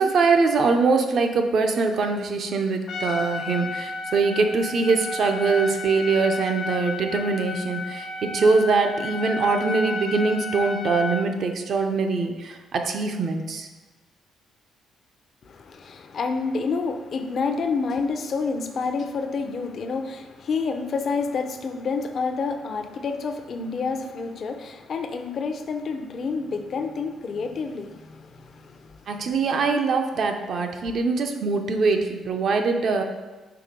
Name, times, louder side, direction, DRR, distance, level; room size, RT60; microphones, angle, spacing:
voice 1, 0.0-13.7 29.1-33.0, right 4 dB, 60° right, 4 dB, 0.7 m, -23 dB
Trumpet, 2.9-11.3, left 3 dB, 75° left, 1.0 m, -32 dB
voice 2, 15.4-29.1, left 4 dB, 55° left, 6 dB, 0.6 m, -29 dB
4.8 x 4.0 x 5.2 m, 1.3 s
cardioid pair, 90°, 0 cm